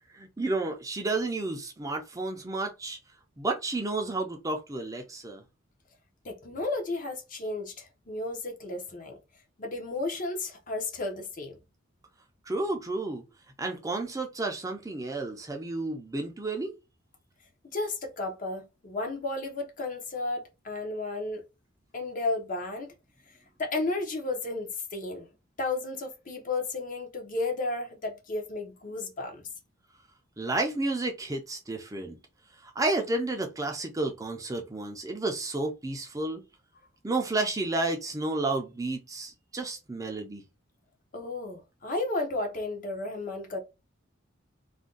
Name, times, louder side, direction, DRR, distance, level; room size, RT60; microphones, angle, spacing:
voice 1, 0.1-3.0 3.4-5.4 12.5-13.2 13.6-16.7 30.4-32.2 32.6-36.4 37.0-40.4, right 2 dB, 15° right, 0.5 m, -31 dB
voice 2, 6.2-9.2 9.6-11.6 17.7-21.4 21.9-22.9 23.3-25.3 25.6-29.4 41.1-43.6, left 2 dB, 40° left, 0.7 m, -33 dB
2.5 x 2.2 x 3.7 m
head